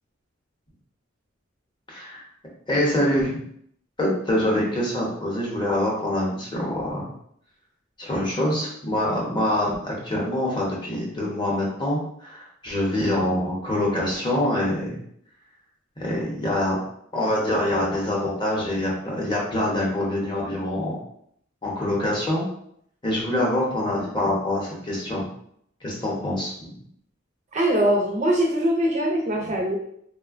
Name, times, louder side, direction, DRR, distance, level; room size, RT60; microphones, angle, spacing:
voice 1, 1.9-2.2 2.7-3.4 4.0-7.1 8.0-15.0 16.0-16.8 17.1-21.0 21.6-22.4 23.0-25.3 25.8-26.8, left 1 dB, 25° left, -4 dB, 0.7 m, -25 dB
voice 2, 27.5-29.8, right 1 dB, 35° right, 0 dB, 0.4 m, -22 dB
3.2 x 2.1 x 2.4 m, 0.69 s
head